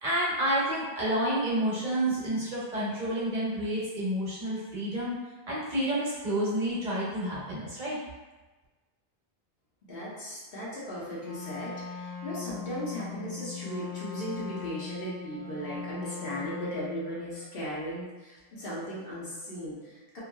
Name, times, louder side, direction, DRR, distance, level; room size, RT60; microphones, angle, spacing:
voice 1, 0.0-5.1 5.5-8.0, right 1 dB, 50° right, -7 dB, 0.9 m, -29 dB
voice 2, 9.9-20.2, equal, 65° left, -7 dB, 1.0 m, -37 dB
Wind instrument woodwind instrument, 11.2-17.1, left 7 dB, 45° left, 0.7 m, -40 dB
2.7 x 2.6 x 2.2 m, 1.2 s
omnidirectional pair, 1.1 m